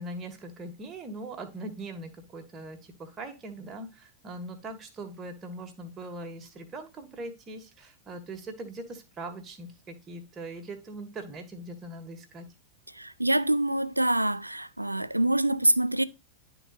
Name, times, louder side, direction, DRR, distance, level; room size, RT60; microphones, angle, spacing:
voice 1, 0.0-12.5, right 2 dB, 25° right, 1.6 m, -41 dB
voice 2, 12.9-16.0, right 1 dB, 85° right, 0.3 m, -25 dB
11.5 x 3.9 x 2.4 m
figure-of-eight pair, 90°, 0 cm